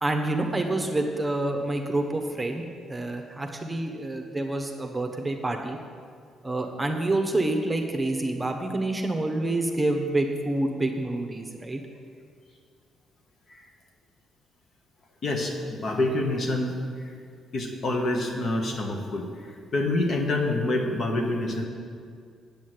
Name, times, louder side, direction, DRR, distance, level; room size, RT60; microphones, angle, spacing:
voice 1, 0.0-5.8 6.4-11.8, right 2 dB, 15° right, 3 dB, 1.0 m, -27 dB
voice 2, 15.2-16.7 17.5-19.3 19.7-21.7, left 2 dB, 55° left, 2 dB, 1.4 m, -26 dB
8.7 x 6.3 x 7.7 m, 2.2 s
cardioid pair, 90°, 0 cm